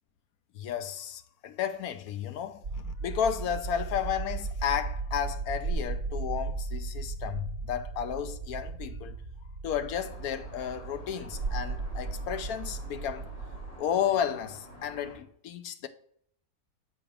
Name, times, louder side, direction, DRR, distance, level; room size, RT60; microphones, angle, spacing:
voice 1, 0.5-9.2 9.6-13.2 13.8-15.9, left 9 dB, 80° left, 1.1 m, -33 dB
sound 1, 2.6-13.7, right 4 dB, 50° right, 0.9 m, -36 dB
sound 2, 9.9-15.2, right 1 dB, 45° left, 2.7 m, -49 dB
7.0 x 4.8 x 3.4 m
omnidirectional pair, 1.6 m